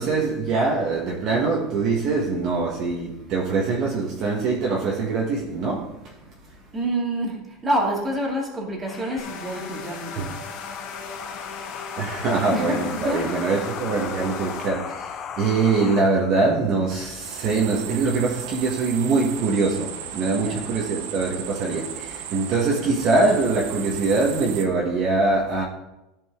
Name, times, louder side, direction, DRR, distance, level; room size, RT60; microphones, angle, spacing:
voice 1, 0.0-6.6 10.2-10.3 12.0-25.6, right 3 dB, 45° right, 1.5 m, -23 dB
voice 2, 6.7-10.4 12.5-13.4 20.4-20.6, right 1 dB, 15° right, 2.5 m, -27 dB
sound 1, 8.9-16.0, left 7 dB, 35° left, 0.7 m, -36 dB
sound 2, 9.2-14.7, left 4 dB, 70° left, 1.5 m, -38 dB
sound 3, 17.0-24.6, right 9 dB, 80° right, 0.8 m, -36 dB
14.0 x 5.3 x 3.7 m
supercardioid pair, 145°, 0 cm